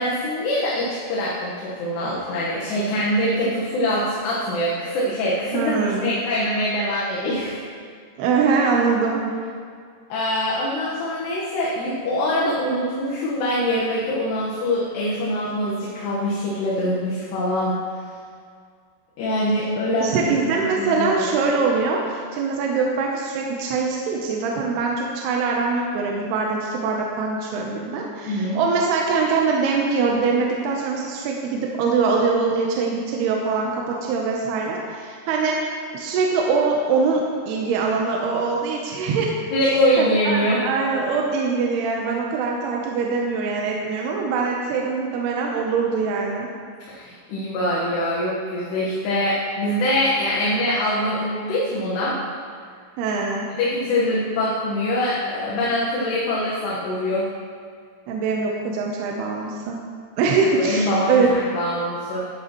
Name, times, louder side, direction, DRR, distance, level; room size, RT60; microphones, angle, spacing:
voice 1, 0.0-5.8 6.0-7.6 10.1-17.8 19.2-21.3 28.3-28.6 39.5-40.6 46.9-52.2 53.5-57.3 60.3-60.4 60.6-62.2, left 1 dB, 75° left, -7 dB, 3.3 m, -24 dB
voice 2, 5.5-6.1 8.2-9.2 20.0-35.6 35.9-39.3 40.0-46.5 53.0-53.5 58.1-59.8 60.2-61.4, right 4 dB, 75° right, -1 dB, 2.6 m, -23 dB
12.5 x 9.4 x 3.0 m, 2.1 s
omnidirectional pair, 5.1 m